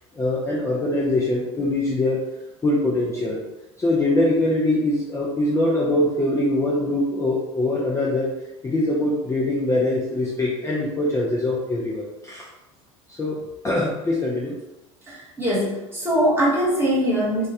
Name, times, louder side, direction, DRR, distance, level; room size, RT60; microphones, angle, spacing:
voice 1, 0.2-2.2 2.6-3.4 3.8-8.3 8.6-12.5 13.1-14.6, left 1 dB, 15° left, -5 dB, 0.5 m, -23 dB
voice 2, 15.1-17.5, equal, 15° right, -7 dB, 1.2 m, -22 dB
2.2 x 2.2 x 2.7 m, 1.0 s
supercardioid pair, 95°, 16 cm